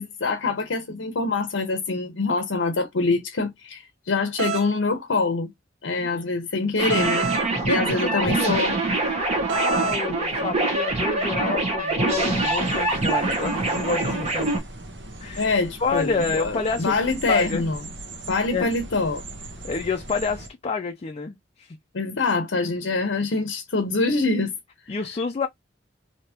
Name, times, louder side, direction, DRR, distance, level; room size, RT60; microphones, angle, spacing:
voice 1, 0.0-5.5 5.8-7.3 7.7-8.8 15.4-17.8 18.3-19.2 21.9-24.5 24.8-24.9, left 3 dB, 85° left, 0.7 m, -25 dB
sound 1, 4.4-4.7 6.9-7.5 9.5-10.0, right 7 dB, 85° right, 0.5 m, -27 dB
voice 2, 5.9-6.2 7.9-8.6 9.5-14.5 15.2-15.5 15.8-17.0 17.3-17.7 18.5-18.7 19.6-21.8 24.9-25.5, left 4 dB, 35° left, 0.4 m, -28 dB
sound 2, 6.8-14.6, right 2 dB, 35° right, 1.2 m, -24 dB
sound 3, 12.1-20.5, right 2 dB, 70° right, 1.0 m, -40 dB
3.4 x 2.8 x 2.8 m
head